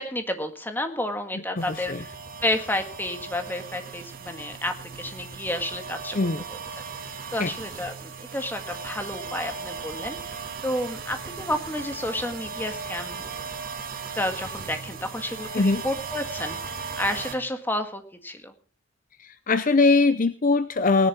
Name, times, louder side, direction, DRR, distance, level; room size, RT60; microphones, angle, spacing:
voice 1, 0.0-2.1 2.4-6.2 6.5-6.8 7.3-10.2 10.6-13.2 14.1-18.5, left 1 dB, 10° left, 7 dB, 1.7 m, -31 dB
voice 2, 1.6-2.0 6.1-6.4 7.4-7.5 15.5-15.8 19.5-21.1, left 3 dB, 45° left, 13 dB, 0.6 m, -21 dB
sound 1, 1.6-17.3, right 5 dB, 45° right, 2.0 m, -37 dB
19.0 x 11.0 x 4.3 m, 0.40 s
head